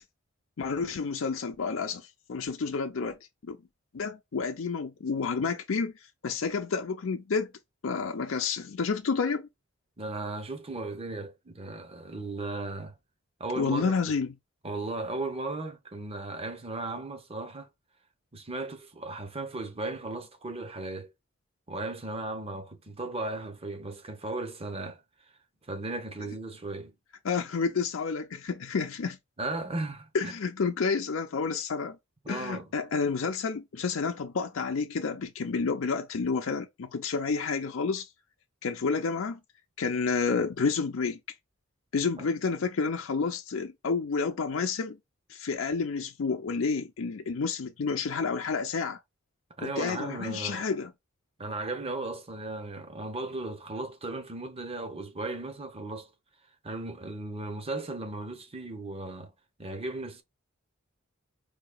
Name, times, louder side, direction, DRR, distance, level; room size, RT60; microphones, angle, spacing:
voice 1, 0.6-3.2 3.4-3.6 3.9-5.9 6.2-7.5 7.8-9.5 13.6-14.3 27.2-29.2 30.1-32.0 32.3-38.1 38.6-39.4 39.8-41.2 41.9-45.0 45.3-49.0 49.6-50.9, left 5 dB, 75° left, 0.5 m, -30 dB
voice 2, 10.0-13.0 13.4-13.9 14.6-17.7 18.3-21.1 21.7-25.0 25.7-26.9 29.4-30.3 32.2-32.7 42.2-42.3 49.6-50.6 51.4-56.1 56.6-59.3 59.6-60.2, right 2 dB, 30° right, 0.9 m, -36 dB
4.8 x 2.8 x 2.2 m
head